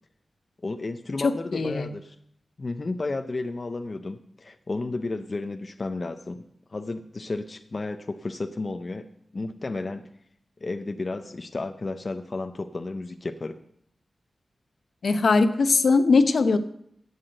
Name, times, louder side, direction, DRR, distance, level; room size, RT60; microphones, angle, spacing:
voice 1, 0.6-2.2 2.6-6.4 6.7-9.1 9.3-10.1 10.6-13.6, left 3 dB, 40° left, 8 dB, 0.5 m, -32 dB
voice 2, 1.2-1.9 15.0-16.6, left 4 dB, 70° left, 10 dB, 0.8 m, -20 dB
8.2 x 7.8 x 7.8 m, 0.71 s
wide cardioid pair, 110°, 0 cm